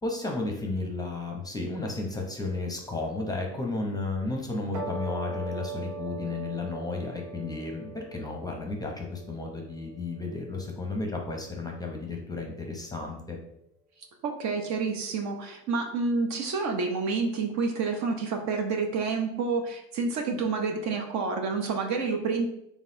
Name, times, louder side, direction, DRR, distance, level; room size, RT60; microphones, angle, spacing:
voice 1, 0.0-13.4, left 3 dB, 10° left, 1 dB, 0.7 m, -33 dB
sound 1, 4.7-11.3, right 3 dB, 85° right, 0.9 m, -40 dB
voice 2, 14.2-22.5, right 4 dB, 50° right, 4 dB, 0.7 m, -29 dB
4.0 x 3.5 x 2.6 m, 0.79 s
supercardioid pair, 95°, 36 cm